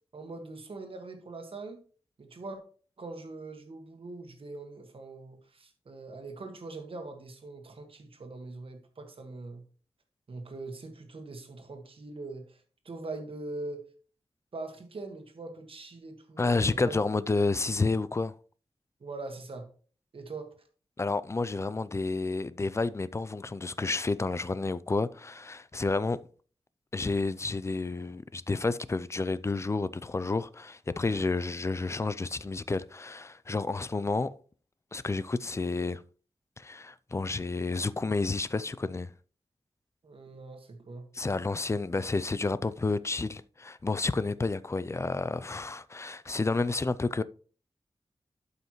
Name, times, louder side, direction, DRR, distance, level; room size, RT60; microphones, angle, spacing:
voice 1, 0.1-1.8 2.2-2.6 3.0-9.6 10.3-12.6 12.8-13.8 14.5-17.0 19.0-19.7 20.1-20.5 40.0-41.1, right 3 dB, 65° right, 1.6 m, -42 dB
voice 2, 16.4-18.3 21.0-26.3 26.9-34.4 34.9-36.0 36.6-39.1 41.1-47.2, left 3 dB, 30° left, 0.4 m, -30 dB
12.0 x 5.6 x 3.1 m
wide cardioid pair, 115°, 10 cm